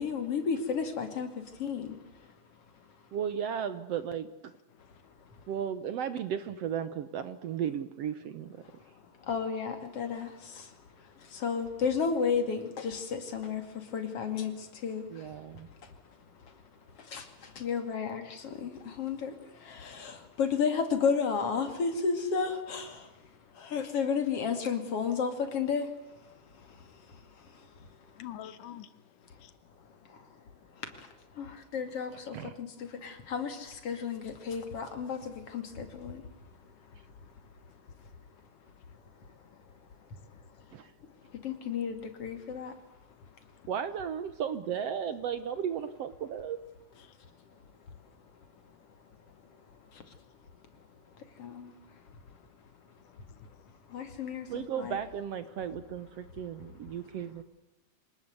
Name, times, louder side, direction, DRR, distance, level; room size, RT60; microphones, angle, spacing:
voice 1, 0.0-2.3 9.2-15.4 16.5-16.6 17.0-23.1 23.5-25.9 26.7-27.7 30.1-30.2 30.8-31.1 31.3-36.2 41.4-42.7 49.9-50.1 51.4-51.7 53.9-55.0, left 6 dB, 50° left, 3.2 m, -33 dB
voice 2, 3.1-4.3 5.5-8.6 15.1-15.7 32.3-32.6 40.7-40.9 43.7-46.6 54.5-57.4, right 8 dB, 65° right, 1.7 m, -35 dB
voice 3, 4.7-5.5 8.6-9.3 10.8-11.4 15.7-17.6 20.2-20.3 23.0-23.7 26.3-30.7 36.1-41.5 43.1-43.7 47.0-49.1 49.4-50.2 50.7-51.4 52.2-54.0, left 11 dB, 85° left, 2.7 m, -56 dB
25.5 x 19.5 x 8.1 m
omnidirectional pair, 3.6 m